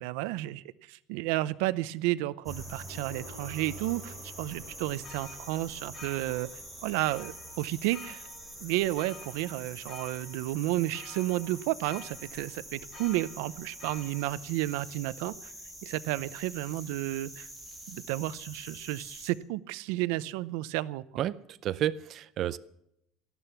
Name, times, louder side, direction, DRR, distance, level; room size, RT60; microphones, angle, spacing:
voice 1, 0.0-6.5 6.8-8.2 8.6-15.5 15.8-17.5 17.9-21.0, right 17 dB, 90° right, 0.7 m, -32 dB
sound 1, 2.5-19.3, right 1 dB, ahead, 3.9 m, -45 dB
Gong, 2.8-12.6 12.9-13.2 13.5-13.6, right 2 dB, 70° right, 7.4 m, -56 dB
sound 2, 4.5-14.3, left 5 dB, 30° left, 2.4 m, -52 dB
voice 2, 21.2-22.6, right 12 dB, 45° right, 0.6 m, -31 dB
18.0 x 13.5 x 5.8 m
cardioid pair, 160°, 0 cm